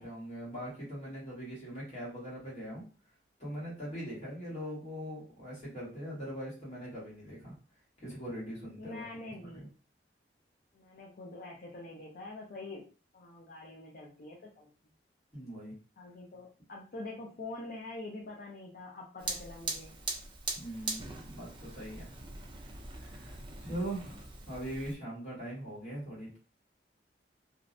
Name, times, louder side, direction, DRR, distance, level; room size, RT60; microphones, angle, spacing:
voice 1, 0.0-2.8 3.4-7.5 8.0-9.0 9.4-9.7 15.3-15.7 20.5-22.1 23.0-26.4, right 1 dB, 40° left, -6 dB, 1.4 m, -41 dB
voice 2, 8.8-9.7 10.7-12.8 13.1-14.7 16.0-20.0 23.6-23.7, left 2 dB, 55° left, -3 dB, 0.5 m, -45 dB
Fire, 19.2-25.0, right 3 dB, 30° right, 0.4 m, -41 dB
2.5 x 2.0 x 2.5 m, 0.36 s
head